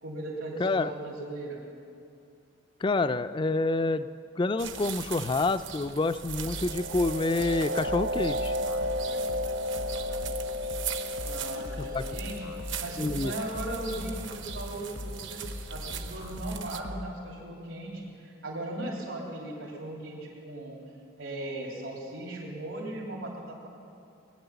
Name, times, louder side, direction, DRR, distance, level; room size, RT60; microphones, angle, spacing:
voice 1, 0.0-1.6 11.2-12.5 12.8-20.8 21.2-23.7, right 1 dB, 85° right, -3 dB, 3.0 m, -38 dB
voice 2, 0.6-0.9 2.8-4.1 4.4-8.5 11.9-12.0 13.0-13.3, left 3 dB, 25° left, 12 dB, 0.3 m, -27 dB
sound 1, 4.6-16.8, right 8 dB, 65° right, 0.9 m, -40 dB
sound 2, 6.3-17.3, left 1 dB, 65° left, 0.8 m, -41 dB
sound 3, 6.3-15.8, left 1 dB, 45° right, 0.5 m, -34 dB
20.0 x 9.9 x 7.0 m, 2.6 s
head